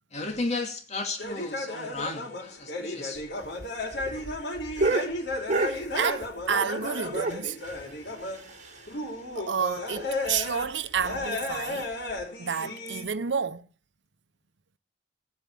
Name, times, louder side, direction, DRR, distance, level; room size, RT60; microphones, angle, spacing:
voice 1, 0.1-3.2, left 3 dB, 40° left, 2.5 m, -34 dB
sound 1, 1.2-8.6 8.9-10.7 11.0-13.1, left 2 dB, 65° left, 5.3 m, -34 dB
sound 2, 3.4-6.8 7.1-9.1 9.4-9.5 9.8-9.9 10.3-10.4 11.0-11.2 12.1-12.2, right 2 dB, 45° right, 5.2 m, -31 dB
voice 2, 5.6-7.6 9.3-11.9 12.4-13.7, right 6 dB, 80° right, 0.9 m, -30 dB
18.5 x 8.7 x 7.7 m
head